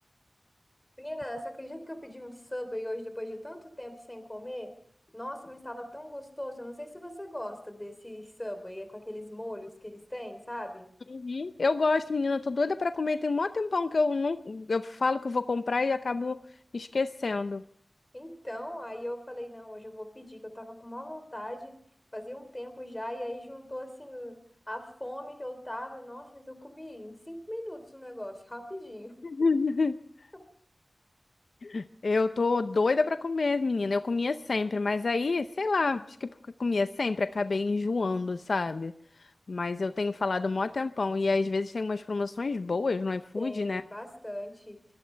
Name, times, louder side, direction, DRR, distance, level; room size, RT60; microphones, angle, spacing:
voice 1, 1.0-4.7 5.1-10.9 18.1-21.8 22.1-24.4 24.7-29.2 30.3-30.5 43.4-44.8, left 1 dB, 15° left, 9 dB, 3.6 m, -40 dB
voice 2, 11.1-16.4 16.7-17.6 29.2-30.0 31.6-36.3 36.6-38.9 39.5-43.8, left 3 dB, 75° left, 11 dB, 0.6 m, -28 dB
23.5 x 18.0 x 3.4 m, 0.66 s
wide cardioid pair, 75°, 0 cm